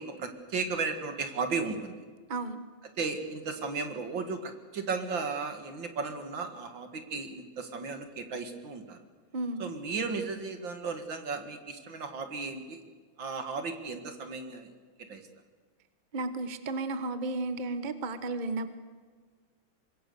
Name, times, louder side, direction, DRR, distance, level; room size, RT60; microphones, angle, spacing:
voice 1, 0.0-2.0 3.0-9.0 9.6-12.8 13.2-14.7 15.0-15.3, right 4 dB, 65° right, 7 dB, 2.7 m, -35 dB
voice 2, 9.3-9.6 16.1-18.7, right 2 dB, 30° right, 10 dB, 1.1 m, -33 dB
25.5 x 21.0 x 6.9 m, 1.5 s
omnidirectional pair, 2.2 m